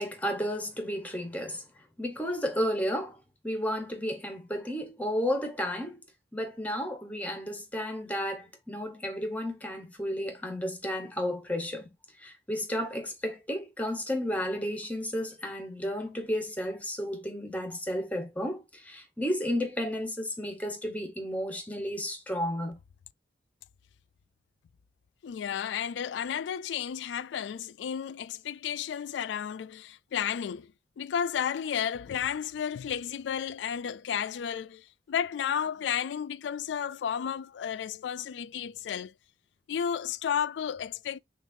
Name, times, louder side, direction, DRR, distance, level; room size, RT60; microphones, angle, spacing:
voice 1, 0.0-6.0 6.3-11.9 12.2-22.8, equal, 10° left, 1.0 m, -32 dB
voice 2, 25.2-30.7 31.0-39.1 39.7-41.2, left 8 dB, 90° left, 0.3 m, -32 dB
6.2 x 2.5 x 2.6 m
head